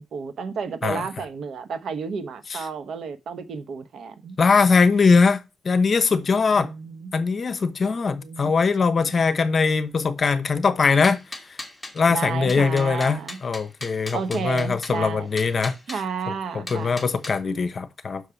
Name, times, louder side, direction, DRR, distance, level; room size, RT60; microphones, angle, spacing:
voice 1, 0.0-4.4 6.6-7.1 7.8-8.5 9.1-9.2 12.1-13.4 14.1-15.3 15.9-16.9, right 5 dB, 65° right, 0.9 m, -32 dB
voice 2, 4.4-5.4 5.6-6.7 7.1-11.2 11.9-15.8 16.5-18.2, left 4 dB, 40° left, 0.9 m, -21 dB
sound 1, 10.8-12.0 12.5-15.0 15.4-16.0 16.7-17.4, left 2 dB, 10° left, 1.4 m, -38 dB
6.3 x 4.8 x 6.8 m
cardioid pair, 110°, 0 cm